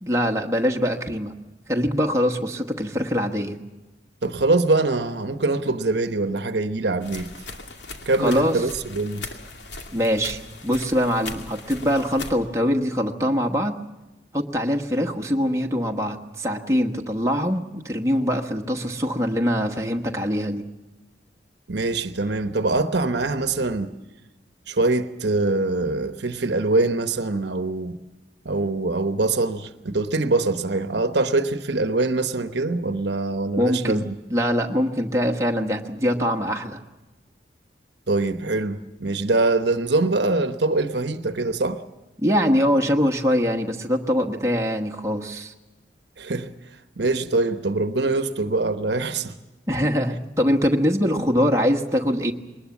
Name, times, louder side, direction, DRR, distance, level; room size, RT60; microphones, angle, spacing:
voice 1, 0.0-1.3 1.7-3.6 8.2-8.6 9.9-13.7 14.3-20.6 33.6-36.8 42.2-45.5 49.7-52.3, equal, 15° right, 1.2 m, -23 dB
voice 2, 4.2-7.3 8.1-9.2 21.7-23.9 24.7-28.0 28.4-34.2 38.1-41.8 46.2-46.5 47.0-49.3, right 2 dB, 70° right, 1.0 m, -23 dB
sound 1, 7.0-12.3, left 3 dB, 70° left, 2.3 m, -39 dB
21.5 x 19.5 x 7.2 m
head